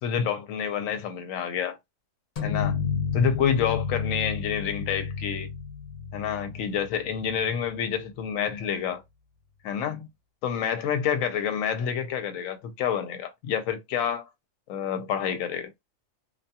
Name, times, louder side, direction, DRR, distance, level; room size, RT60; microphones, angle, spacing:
voice 1, 0.0-1.8 2.4-2.8 3.1-5.5 6.1-9.0 9.6-10.1 10.4-14.2 14.7-15.7, left 8 dB, 80° left, 1.0 m, -28 dB
sound 1, 2.4-7.9, left 6 dB, 55° left, 0.4 m, -31 dB
2.5 x 2.2 x 2.7 m
omnidirectional pair, 1.4 m